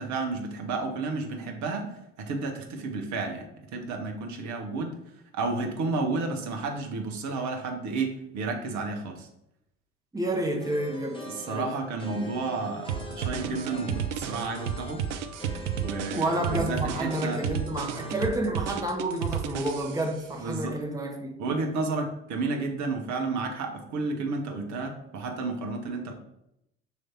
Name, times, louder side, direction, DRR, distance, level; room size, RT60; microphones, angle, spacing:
voice 1, 0.0-1.9 2.2-3.4 3.7-5.0 5.3-9.3 11.3-15.1 15.8-17.4 20.4-20.8 21.4-26.1, right 3 dB, 50° right, 1.3 m, -31 dB
voice 2, 10.1-11.7 16.1-21.3, right 1 dB, 10° right, 1.3 m, -30 dB
sound 1, 10.6-18.3, left 1 dB, 15° left, 1.1 m, -43 dB
sound 2, 12.9-20.2, right 8 dB, 75° right, 0.5 m, -32 dB
6.9 x 3.2 x 4.4 m
figure-of-eight pair, 60°, 36 cm